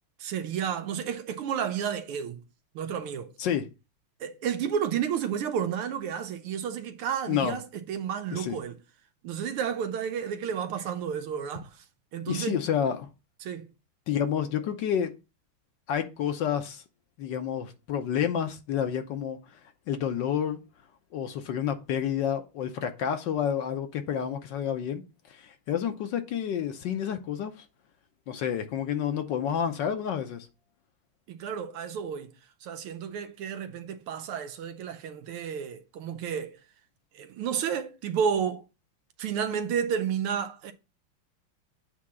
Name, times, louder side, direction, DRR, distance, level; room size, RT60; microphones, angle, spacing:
voice 1, 0.2-2.4 2.7-3.3 4.2-8.7 9.2-11.7 12.1-12.6 13.4-13.7 31.3-32.3 32.6-36.6 37.1-38.6 39.2-40.7, right 8 dB, 90° right, 1.7 m, -31 dB
voice 2, 12.3-13.1 14.1-15.1 15.9-16.8 17.2-19.4 19.9-20.6 21.1-25.0 25.3-27.5 28.3-30.5, left 8 dB, 65° left, 1.3 m, -29 dB
8.3 x 2.8 x 6.2 m
omnidirectional pair, 2.3 m